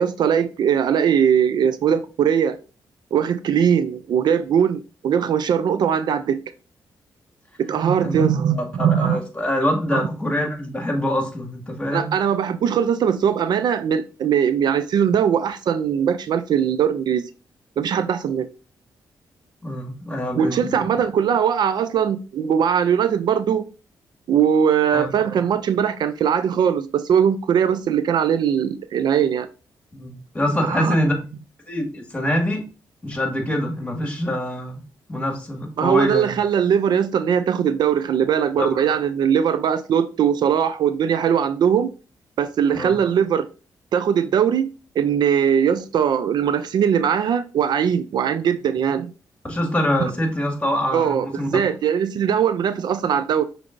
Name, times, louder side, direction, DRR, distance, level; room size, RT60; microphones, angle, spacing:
voice 1, 0.0-2.6 3.1-6.4 7.6-9.2 9.9-10.0 11.9-17.3 17.8-18.5 20.3-23.6 24.3-29.5 30.6-30.9 35.8-41.9 42.4-43.5 43.9-44.7 45.0-49.1 50.9-53.4, right 8 dB, 70° right, 0.4 m, -20 dB
voice 2, 8.5-12.1 19.6-20.7 24.9-25.1 29.9-31.2 31.7-32.6 33.0-34.8 35.1-36.3 38.6-39.0 42.7-42.9 49.4-51.5, equal, 15° left, 1.6 m, -24 dB
6.0 x 3.2 x 2.5 m
cardioid pair, 70°, 8 cm